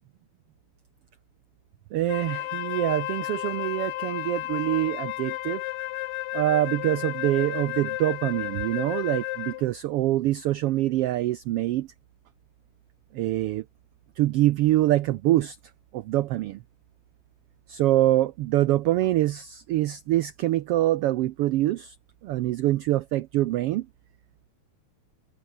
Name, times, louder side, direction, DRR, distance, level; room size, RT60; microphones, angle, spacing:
voice 1, 1.9-5.6 6.3-11.9 13.1-13.6 14.2-15.6 15.9-16.6 17.7-21.9 22.2-23.9, right 15 dB, 90° right, 1.3 m, -25 dB
Wind instrument woodwind instrument, 2.1-9.7, left 17 dB, 80° left, 1.9 m, -33 dB
omnidirectional pair, 3.4 m